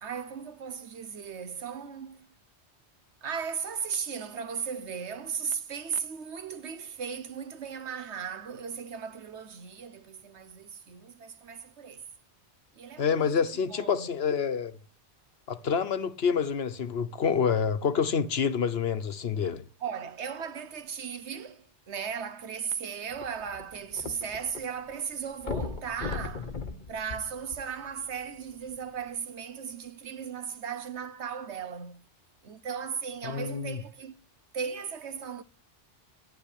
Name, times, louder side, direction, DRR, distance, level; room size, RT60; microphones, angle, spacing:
voice 1, 0.0-2.3 3.2-12.0 12.7-14.2 19.8-26.5 26.9-32.0 32.4-34.1 34.5-35.4, right 6 dB, 75° right, 1.3 m, -37 dB
voice 2, 13.0-14.8 15.5-19.6 33.2-33.8, left 6 dB, 65° left, 1.2 m, -27 dB
sound 1, 23.1-24.6 24.9-25.0 25.4-28.0 28.7-28.8, left 4 dB, 45° left, 1.3 m, -37 dB
10.5 x 9.9 x 9.9 m
omnidirectional pair, 1.2 m